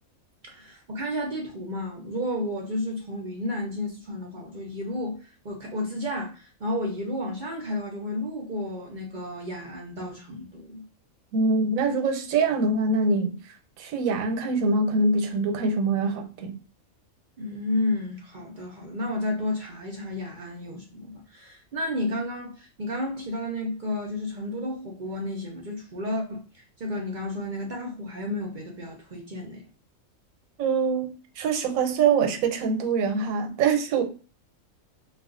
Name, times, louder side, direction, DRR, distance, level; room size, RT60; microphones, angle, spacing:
voice 1, 0.4-10.8 17.4-29.6, left 1 dB, 55° right, 0.5 m, -32 dB
voice 2, 11.3-13.4 13.8-16.5 30.6-34.0, right 4 dB, 90° right, 1.0 m, -24 dB
2.3 x 2.3 x 3.6 m
omnidirectional pair, 1.4 m